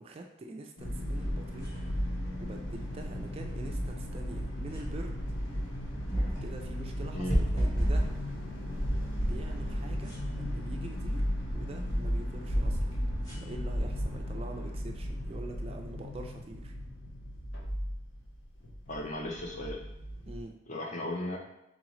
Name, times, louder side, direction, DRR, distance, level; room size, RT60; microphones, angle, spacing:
voice 1, 0.0-1.7 2.4-5.2 6.4-8.1 9.2-11.3 11.5-13.0 13.4-16.7 20.3-20.5, right 2 dB, 30° right, 3 dB, 0.3 m, -44 dB
sound 1, 0.8-20.4, equal, 65° left, 0.8 m, -35 dB
sound 2, 1.1-14.8, equal, 20° left, 1.2 m, -38 dB
voice 2, 18.9-19.8 20.7-21.4, left 1 dB, 40° left, 1 dB, 0.6 m, -35 dB
3.9 x 3.7 x 3.0 m, 0.88 s
head